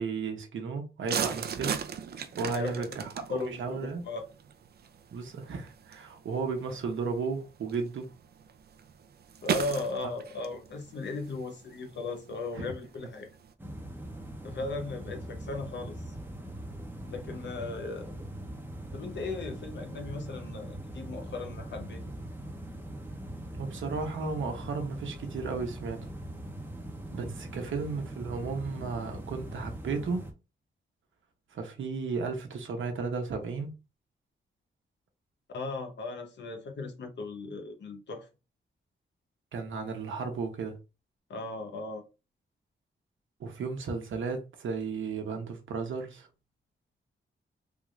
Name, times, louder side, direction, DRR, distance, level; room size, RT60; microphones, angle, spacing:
voice 1, 0.0-1.8 2.4-4.0 5.1-8.1 12.5-12.7 23.6-26.0 27.1-30.3 31.5-33.7 39.5-40.8 43.4-46.3, right 4 dB, 85° right, 0.9 m, -34 dB
sound 1, 1.1-13.5, right 7 dB, 55° right, 0.4 m, -39 dB
voice 2, 2.3-2.8 3.3-4.2 9.4-13.3 14.4-16.1 17.1-18.2 18.9-22.0 35.5-38.3 41.3-42.0, left 3 dB, 65° left, 0.9 m, -37 dB
sound 2, 13.6-30.3, right 1 dB, 10° right, 0.7 m, -41 dB
3.5 x 2.5 x 3.2 m
wide cardioid pair, 150°, 20 cm